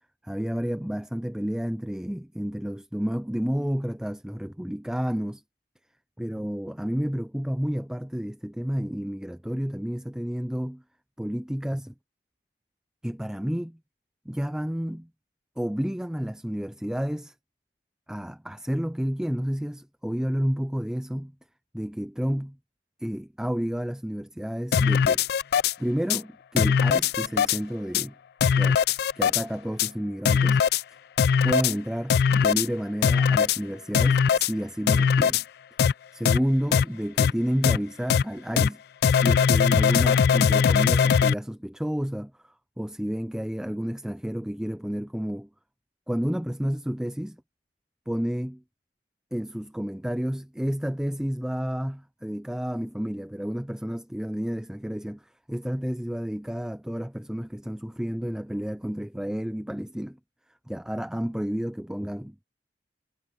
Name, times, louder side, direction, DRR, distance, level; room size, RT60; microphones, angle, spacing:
voice 1, 0.2-5.4 6.2-10.8 11.2-11.9 13.0-13.8 14.3-15.1 15.6-17.3 18.1-21.3 21.7-22.6 23.0-25.2 25.8-28.2 28.5-28.8 29.2-30.6 31.4-35.4 36.1-38.8 39.1-45.5 46.1-47.4 48.1-48.6 49.3-60.2 60.7-62.4, equal, 5° right, 0.4 m, -30 dB
sound 1, 24.7-25.7 26.1-26.2 26.6-27.6 27.9-28.0 28.4-29.4 29.8-29.9 30.2-30.8 31.2-31.7 32.1-32.7 33.0-33.6 33.9-34.5 34.9-35.4 35.8-35.9 36.2-36.4 36.7-36.8 37.2-37.3 37.6-37.8 38.1-38.2 38.6-38.7 39.0-41.3, left 7 dB, 65° left, 0.3 m, -20 dB
head